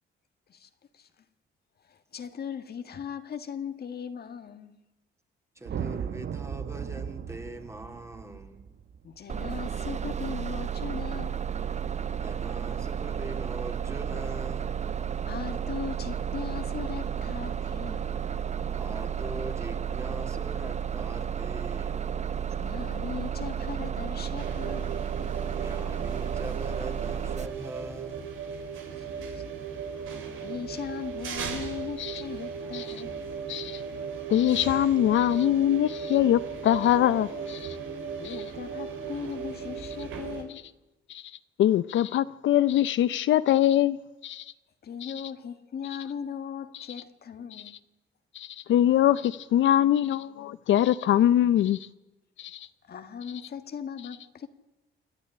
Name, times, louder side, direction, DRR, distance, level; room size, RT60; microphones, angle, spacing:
voice 1, 0.5-1.1 1.8-4.8 9.0-11.4 15.2-18.2 22.5-24.9 28.9-29.1 29.3-29.6 30.1-33.2 38.2-40.6 44.8-47.8 52.9-54.5, left 7 dB, 55° left, 1.7 m, -39 dB
voice 2, 5.5-8.7 12.2-14.8 18.7-22.1 25.5-28.3, right 1 dB, 15° right, 2.8 m, -42 dB
sound 1, 5.6-10.0, right 8 dB, 55° right, 1.0 m, -37 dB
Bus, 9.3-27.5, right 8 dB, 35° right, 0.8 m, -32 dB
sound 2, 24.4-40.4, right 6 dB, 85° right, 4.1 m, -37 dB
voice 3, 33.5-33.8 34.3-37.8 38.2-38.4 41.1-41.2 41.6-44.0 44.2-44.4 45.0-45.1 48.3-51.8 52.4-52.7, left 12 dB, 70° left, 0.7 m, -23 dB
28.0 x 11.0 x 9.9 m
cardioid pair, 90°, 20 cm